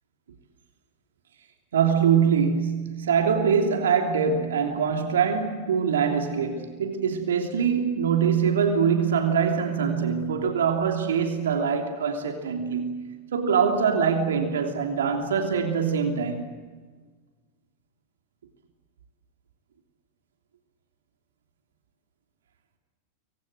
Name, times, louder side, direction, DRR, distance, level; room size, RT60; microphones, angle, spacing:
voice 1, 1.7-13.0 13.3-16.4, right 6 dB, 65° right, 3.1 m, -23 dB
28.0 x 24.0 x 7.8 m
figure-of-eight pair, 90°, 0 cm